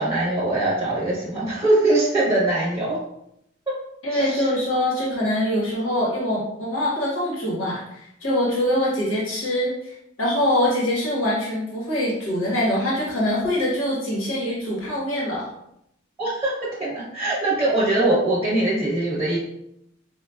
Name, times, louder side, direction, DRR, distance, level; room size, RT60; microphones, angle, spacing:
voice 1, 0.0-3.0 4.1-4.5 16.2-19.4, right 2 dB, 10° right, -7 dB, 0.8 m, -22 dB
voice 2, 4.0-15.5, left 1 dB, 80° left, -5 dB, 1.2 m, -24 dB
4.7 x 2.2 x 2.2 m, 0.78 s
head